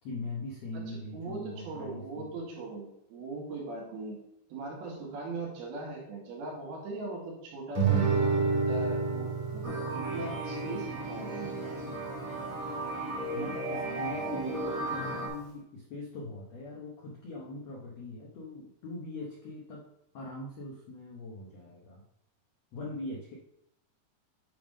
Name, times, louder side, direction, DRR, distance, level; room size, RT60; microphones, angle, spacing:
voice 1, 0.0-2.3 13.3-19.8 20.1-22.0 22.7-23.3, left 2 dB, 80° left, -2 dB, 1.5 m, -41 dB
voice 2, 0.7-4.2 4.5-9.6 10.0-11.8, right 2 dB, 75° right, -3 dB, 3.8 m, -40 dB
Guitar, 7.7-12.8, right 4 dB, 60° right, 2.8 m, -31 dB
sound 1, 9.6-15.3, right 2 dB, 20° right, 1.2 m, -35 dB
9.2 x 3.5 x 5.1 m, 0.80 s
omnidirectional pair, 4.5 m